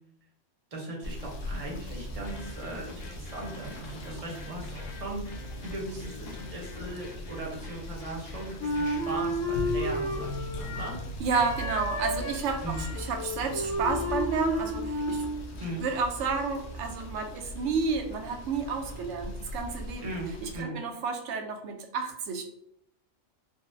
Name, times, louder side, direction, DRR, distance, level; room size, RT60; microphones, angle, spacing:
voice 1, 0.7-5.3 5.6-11.0 12.6-12.8 15.6-15.8 20.0-20.8, right 2 dB, 35° right, -2 dB, 0.7 m, -38 dB
Rain / Motor vehicle (road), 1.0-20.6, equal, 65° left, 0.8 m, -39 dB
sound 1, 2.2-9.1, left 2 dB, 50° left, 1.3 m, -49 dB
Wind instrument woodwind instrument, 8.6-11.0 11.3-15.4, left 1 dB, 85° left, 1.5 m, -32 dB
voice 2, 11.2-15.2 15.8-20.1 20.4-22.4, right 4 dB, 70° right, 4 dB, 0.9 m, -31 dB
3.8 x 2.0 x 2.5 m, 0.72 s
omnidirectional pair, 1.3 m